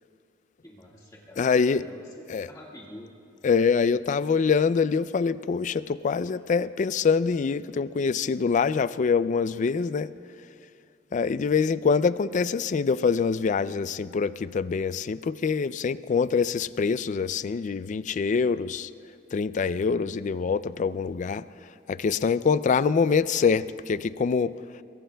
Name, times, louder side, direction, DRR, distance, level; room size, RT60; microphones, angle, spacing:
voice 1, 0.6-3.1, left 1 dB, 20° left, -3 dB, 1.8 m, -46 dB
voice 2, 1.4-1.8 2.3-2.5 3.4-10.1 11.1-18.9 19.3-21.4 21.9-24.5, left 5 dB, 40° left, 16 dB, 0.3 m, -25 dB
23.5 x 22.5 x 2.3 m, 2.4 s
head